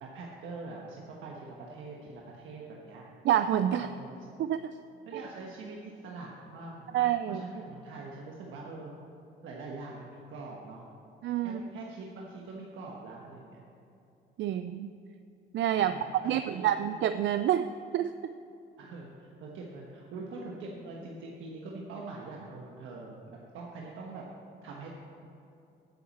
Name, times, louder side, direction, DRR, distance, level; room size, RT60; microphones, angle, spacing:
voice 1, 0.0-3.0 3.7-4.2 5.0-8.9 9.4-10.9 11.4-13.6 15.8-16.8 18.8-24.2 24.6-24.9, right 3 dB, 85° right, -2 dB, 1.3 m, -44 dB
voice 2, 3.2-3.9 4.4-4.7 5.1-5.2 6.9-7.4 11.2-11.6 14.4-14.9 15.5-15.9 16.2-17.7 17.9-18.3, right 11 dB, 65° right, 11 dB, 0.4 m, -28 dB
9.6 x 7.2 x 8.6 m, 2.7 s
cardioid pair, 90°, 20 cm